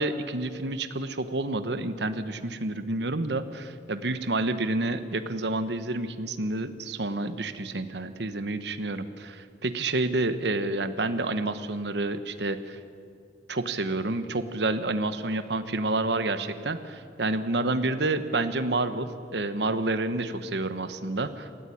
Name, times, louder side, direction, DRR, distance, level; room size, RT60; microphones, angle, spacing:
voice 1, 0.0-12.8 13.5-21.5, right 2 dB, 65° right, 11 dB, 1.1 m, -29 dB
20.0 x 14.5 x 9.9 m, 2.4 s
head